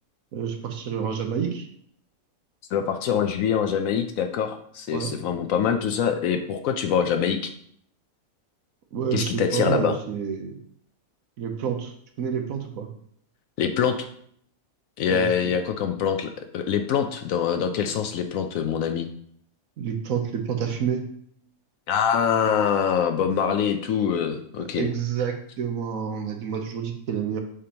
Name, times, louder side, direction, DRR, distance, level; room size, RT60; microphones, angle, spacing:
voice 1, 0.3-1.7 4.9-5.1 8.9-10.6 11.4-12.9 15.1-15.3 19.8-21.0 24.6-27.4, right 7 dB, 75° right, 5 dB, 1.3 m, -29 dB
voice 2, 2.7-7.5 9.1-10.0 13.6-14.0 15.0-19.1 21.9-24.9, left 7 dB, 75° left, 6 dB, 1.0 m, -24 dB
6.8 x 5.1 x 2.9 m, 0.65 s
omnidirectional pair, 1.5 m